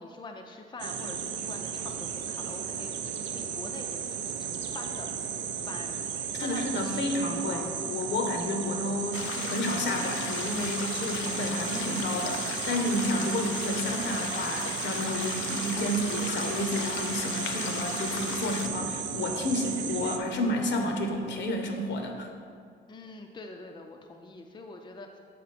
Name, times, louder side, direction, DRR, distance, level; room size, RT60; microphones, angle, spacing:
voice 1, 0.0-3.0 3.3-7.8 22.9-25.2, left 3 dB, 20° left, 3 dB, 0.5 m, -45 dB
sound 1, 0.8-20.2, right 7 dB, 70° right, 0.5 m, -34 dB
voice 2, 6.4-22.3, left 1 dB, 65° left, 3 dB, 0.8 m, -31 dB
sound 2, 9.1-18.7, left 7 dB, 85° left, 0.5 m, -37 dB
6.7 x 4.3 x 4.2 m, 2.2 s
cardioid pair, 90°, 20 cm